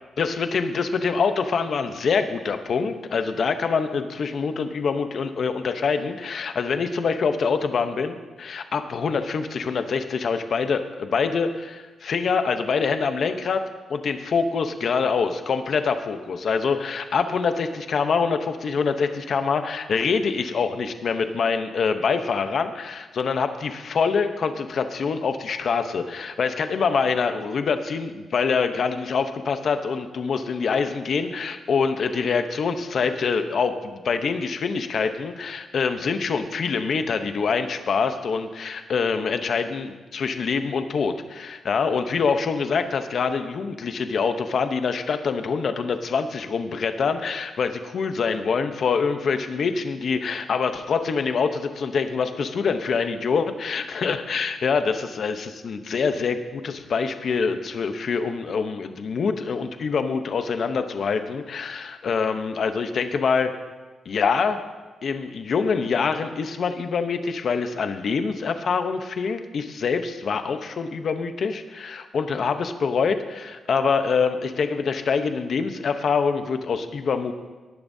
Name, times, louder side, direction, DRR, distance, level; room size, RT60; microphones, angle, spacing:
voice 1, 0.2-13.6 13.9-63.5 64.1-64.6 65.0-77.3, left 5 dB, 50° left, 8 dB, 0.8 m, -25 dB
19.0 x 10.5 x 2.7 m, 1.3 s
wide cardioid pair, 160°, 0 cm